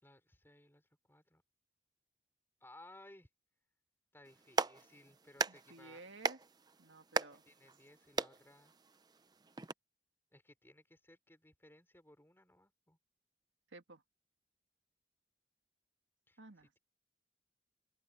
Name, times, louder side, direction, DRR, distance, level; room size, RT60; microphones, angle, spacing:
voice 1, 0.0-1.4 2.6-3.3 4.1-6.0 7.3-8.7 10.3-13.0 16.3-16.8, left 1 dB, 10° left, 5.1 m, -61 dB
Clapping, 4.3-9.7, right 4 dB, 20° right, 0.7 m, -40 dB
voice 2, 5.5-6.4 6.8-7.4 13.7-14.0 16.4-16.7, right 3 dB, 90° right, 2.0 m, -54 dB
open air
head